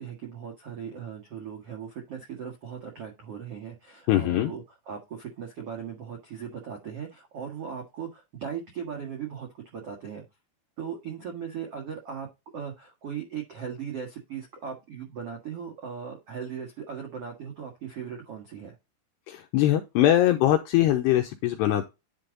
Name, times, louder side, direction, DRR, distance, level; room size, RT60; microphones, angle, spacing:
voice 1, 0.0-10.2 10.8-12.3 12.5-18.8, right 7 dB, 70° right, 1 dB, 1.4 m, -38 dB
voice 2, 4.1-4.5 19.3-21.9, left 13 dB, 80° left, 5 dB, 2.4 m, -22 dB
10.5 x 3.7 x 3.9 m, 0.24 s
omnidirectional pair, 5.6 m